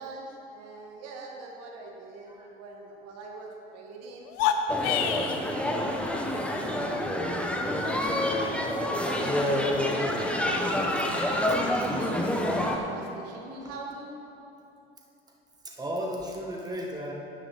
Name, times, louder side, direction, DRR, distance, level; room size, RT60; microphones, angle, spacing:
voice 1, 0.0-4.3 4.7-14.1, right 3 dB, 55° right, 0 dB, 2.1 m, -41 dB
sound 1, 4.2-5.4, left 8 dB, 60° left, 0.9 m, -26 dB
sound 2, 4.7-12.8, left 1 dB, 5° left, 1.2 m, -28 dB
voice 2, 15.6-17.1, equal, 15° right, -1 dB, 1.8 m, -34 dB
12.5 x 9.3 x 4.3 m, 2.7 s
hypercardioid pair, 75°, 29 cm